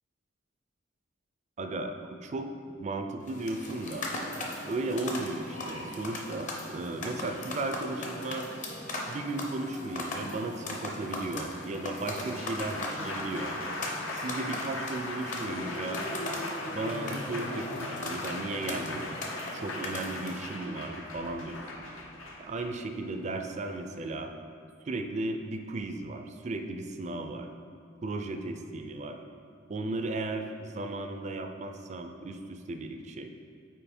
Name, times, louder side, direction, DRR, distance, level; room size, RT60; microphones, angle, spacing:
voice 1, 1.6-2.5 2.8-4.1 4.7-8.5 9.1-13.6 14.1-16.1 16.7-19.2 19.5-21.9 22.4-24.3 24.9-27.5 28.0-29.2 29.7-33.3, right 2 dB, 35° right, 5 dB, 0.4 m, -35 dB
sound 1, 3.2-20.5, left 2 dB, 40° left, 0.7 m, -39 dB
Applause, 12.1-24.2, left 2 dB, 85° left, 0.8 m, -38 dB
5.5 x 4.5 x 4.3 m, 2.4 s
head